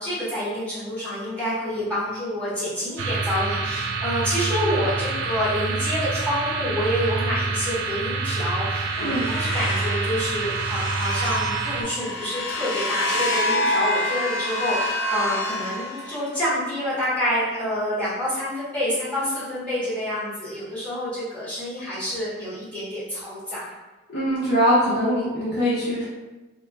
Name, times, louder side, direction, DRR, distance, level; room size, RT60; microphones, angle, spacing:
voice 1, 0.0-23.7, equal, 5° left, -12 dB, 1.0 m, -28 dB
sound 1, 3.0-11.8, right 4 dB, 85° right, 0.3 m, -27 dB
sound 2, 8.2-16.5, left 1 dB, 80° left, 0.5 m, -27 dB
voice 2, 24.1-26.1, equal, 55° left, -10 dB, 1.1 m, -22 dB
3.0 x 2.3 x 2.2 m, 1.1 s
head